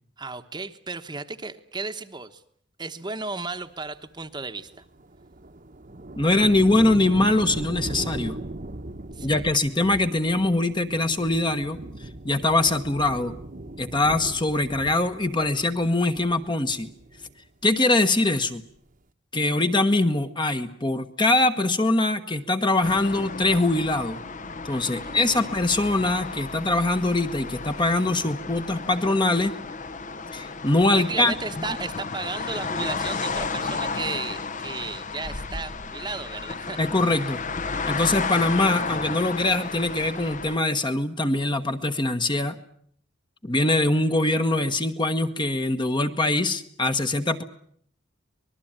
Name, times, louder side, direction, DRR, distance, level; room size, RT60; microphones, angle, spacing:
voice 1, 0.2-2.4 2.8-4.8 9.1-9.4 24.8-25.5 30.9-36.8, right 3 dB, 20° right, 8 dB, 1.2 m, -34 dB
sound 1, 4.7-17.5 17.8-18.4, right 1 dB, 40° right, 1.2 m, -38 dB
voice 2, 6.2-8.4 9.2-11.8 12.2-13.4 13.8-16.9 17.6-18.6 19.3-24.2 24.6-29.5 30.3-31.3 36.8-37.4 37.9-42.6 43.4-47.4, left 2 dB, 25° left, 8 dB, 1.3 m, -23 dB
sound 2, 22.8-40.6, left 4 dB, 40° left, 1.0 m, -33 dB
25.5 x 20.0 x 8.9 m, 0.64 s
head